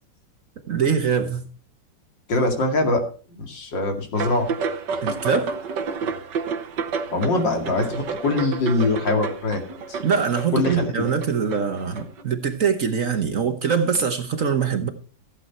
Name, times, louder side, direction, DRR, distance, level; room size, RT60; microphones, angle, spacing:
voice 1, 0.7-1.5 5.0-5.5 10.0-14.9, right 6 dB, 50° right, 1.2 m, -23 dB
voice 2, 2.3-3.0 3.3-4.5 7.1-9.6 9.9-10.0 10.5-10.9, left 2 dB, 70° left, 2.9 m, -23 dB
sound 1, 4.2-12.2, right 5 dB, 65° right, 1.8 m, -30 dB
15.0 x 8.3 x 4.4 m
omnidirectional pair, 2.1 m